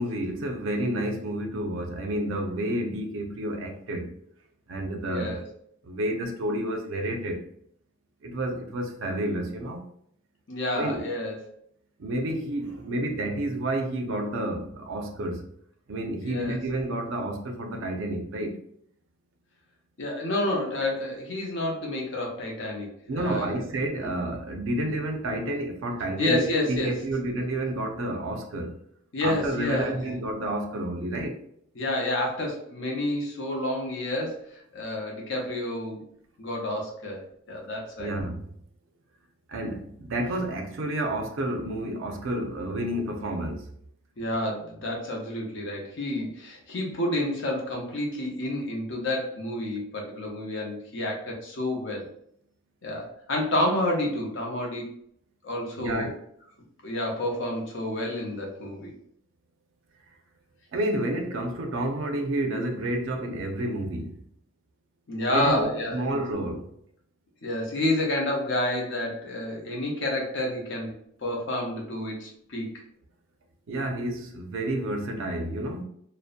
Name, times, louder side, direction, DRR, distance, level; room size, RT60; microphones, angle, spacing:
voice 1, 0.0-4.1 4.7-5.3 5.8-7.4 8.2-9.8 10.7-11.1 12.0-15.5 15.9-18.6 23.1-28.7 29.2-31.4 38.0-38.5 39.5-43.7 55.8-56.1 60.7-64.2 65.3-66.7 73.7-75.8, right 1 dB, 65° right, 0.4 m, -30 dB
voice 2, 5.0-5.4 10.5-11.4 16.2-16.6 20.0-23.6 24.0-24.1 26.2-27.0 29.1-30.2 31.8-34.4 34.7-36.0 36.4-38.1 44.2-52.1 52.8-54.9 55.4-56.1 56.8-58.9 65.1-66.2 67.4-72.8, left 1 dB, 55° left, 0.6 m, -29 dB
2.6 x 2.0 x 2.4 m
head